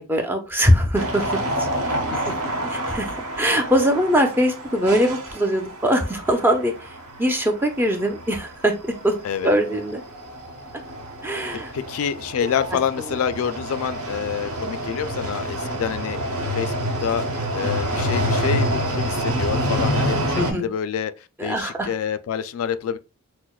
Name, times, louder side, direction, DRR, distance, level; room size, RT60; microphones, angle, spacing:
voice 1, 0.0-2.0 2.2-2.3 2.7-3.1 3.4-6.7 7.2-8.7 9.0-9.1 9.4-10.0 11.2-11.7 20.3-20.7 21.4-21.9, equal, 10° right, 0.5 m, -21 dB
sound 1, 1.0-20.5, equal, 80° right, 1.0 m, -28 dB
voice 2, 11.7-16.7 17.0-17.2 17.5-21.1 21.4-23.0, left 7 dB, 70° left, 0.3 m, -27 dB
6.1 x 2.1 x 2.3 m
head